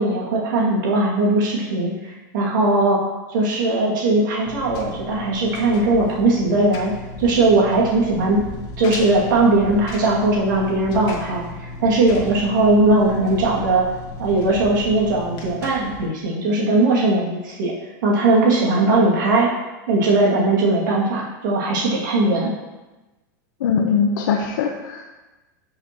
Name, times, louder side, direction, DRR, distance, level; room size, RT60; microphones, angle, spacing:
voice 1, 0.0-6.9 7.2-8.4 8.8-13.9 14.2-17.7 18.0-19.5 19.9-22.5, right 2 dB, 75° right, -4 dB, 2.5 m, -19 dB
Engine, 4.4-16.1, left 2 dB, 45° left, 1.6 m, -36 dB
voice 2, 23.6-25.1, left 6 dB, 80° left, 0 dB, 0.9 m, -21 dB
12.0 x 6.0 x 3.1 m, 1.1 s
supercardioid pair, 120°, 10 cm